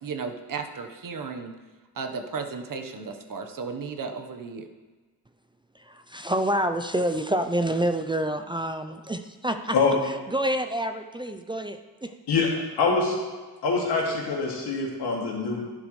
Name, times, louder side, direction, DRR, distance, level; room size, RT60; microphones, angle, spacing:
voice 1, 0.0-1.5 1.9-4.7, right 5 dB, 55° right, 5 dB, 1.2 m, -34 dB
voice 2, 5.7-9.8 10.0-12.2, right 1 dB, 15° right, 7 dB, 0.5 m, -28 dB
voice 3, 12.3-13.2 13.6-15.7, left 4 dB, 85° left, -2 dB, 2.5 m, -24 dB
11.5 x 10.5 x 3.2 m, 1.3 s
cardioid pair, 110°, 39 cm